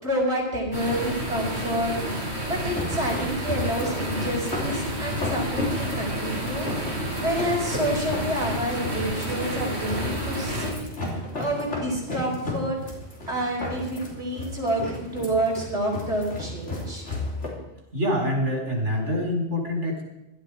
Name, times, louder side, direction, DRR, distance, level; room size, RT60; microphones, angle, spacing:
voice 1, 0.0-1.9 2.4-10.8 11.4-12.8 13.3-17.0, right 1 dB, 65° right, -3 dB, 5.3 m, -28 dB
sound 1, 0.7-10.7, equal, 40° right, 4.0 m, -30 dB
sound 2, 2.6-17.5, left 1 dB, 80° left, 3.8 m, -34 dB
voice 2, 17.9-20.0, equal, 80° right, 1 dB, 4.4 m, -25 dB
17.0 x 12.5 x 5.0 m, 0.92 s
omnidirectional pair, 1.2 m